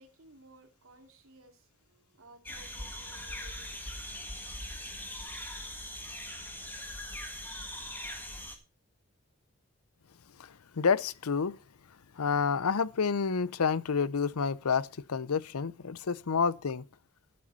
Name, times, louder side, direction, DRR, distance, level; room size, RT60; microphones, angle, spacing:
voice 1, 0.0-4.6, right 1 dB, 70° right, 2.4 m, -58 dB
sound 1, 2.5-8.6, left 1 dB, 10° left, 1.8 m, -41 dB
voice 2, 10.8-11.6 12.2-16.8, left 5 dB, 90° left, 0.6 m, -29 dB
13.0 x 7.7 x 5.4 m
head